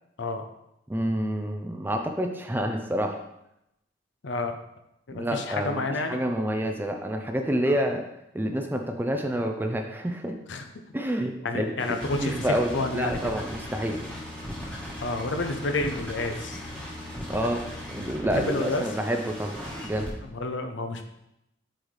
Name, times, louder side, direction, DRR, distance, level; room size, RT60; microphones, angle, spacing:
voice 1, 0.9-3.1 5.1-5.8 6.1-8.0 8.3-10.4 10.9-11.7 12.2-14.0 17.3-17.6 17.9-19.5 19.8-20.1, equal, 10° right, 4 dB, 0.4 m, -28 dB
voice 2, 4.2-4.6 5.1-6.2 7.7-7.8 10.5-10.6 11.2-12.3 12.7-13.2 15.0-16.6 18.5-18.8 20.3-21.0, left 2 dB, 65° left, 6 dB, 0.6 m, -30 dB
sound 1, 11.8-20.1, equal, 5° left, 1.2 m, -38 dB
7.8 x 4.1 x 3.2 m, 0.85 s
head